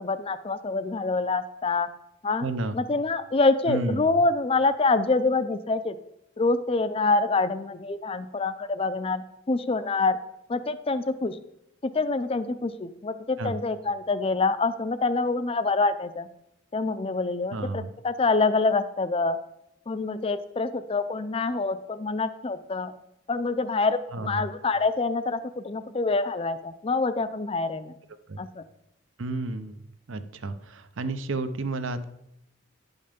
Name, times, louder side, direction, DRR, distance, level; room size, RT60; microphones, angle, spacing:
voice 1, 0.0-1.9 2.2-2.5 2.7-6.0 6.4-10.2 10.5-11.4 11.8-16.3 16.7-19.4 19.9-22.9 23.3-27.9 28.4-28.6, left 3 dB, 25° left, 13 dB, 0.4 m, -26 dB
voice 2, 2.4-2.8 3.7-4.1 13.4-13.6 17.5-17.9 24.1-24.4 28.3-28.4 29.2-29.8 30.1-32.0, right 2 dB, 70° right, 11 dB, 0.7 m, -31 dB
11.0 x 5.4 x 5.2 m, 0.82 s
head